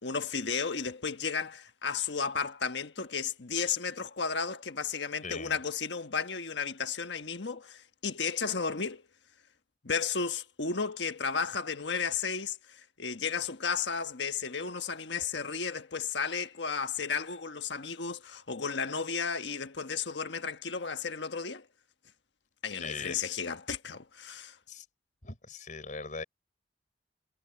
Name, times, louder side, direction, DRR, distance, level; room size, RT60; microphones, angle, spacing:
voice 1, 0.0-9.0 9.8-21.7 22.6-24.6, left 5 dB, 85° left, 1.3 m, -33 dB
voice 2, 5.2-5.6 22.8-23.4 24.7-24.8 25.2-26.2, left 4 dB, 50° left, 4.8 m, -40 dB
head